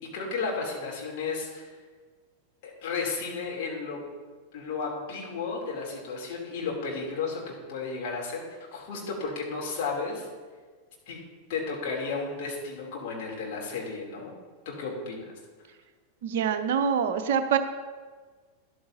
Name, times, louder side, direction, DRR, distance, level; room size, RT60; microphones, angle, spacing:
voice 1, 0.0-1.7 2.6-4.0 4.5-8.5 8.7-10.3 11.1-11.2 11.5-14.3 14.6-15.3, left 4 dB, 50° left, -2 dB, 2.9 m, -33 dB
voice 2, 16.2-17.6, right 7 dB, 55° right, 9 dB, 0.6 m, -25 dB
12.5 x 11.5 x 2.7 m, 1.4 s
figure-of-eight pair, 90°, 0 cm